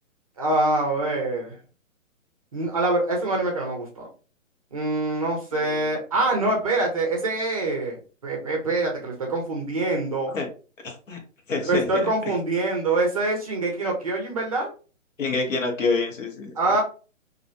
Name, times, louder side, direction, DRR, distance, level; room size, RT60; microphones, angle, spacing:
voice 1, 0.4-1.6 2.5-4.1 4.7-10.3 11.6-14.7 16.6-16.8, right 2 dB, 30° right, 0 dB, 0.5 m, -25 dB
voice 2, 5.5-5.9 10.3-10.5 10.8-11.2 11.5-12.1 15.2-16.5, left 3 dB, 75° left, 3 dB, 1.0 m, -27 dB
2.4 x 2.1 x 2.6 m, 0.36 s
hypercardioid pair, 150°, 39 cm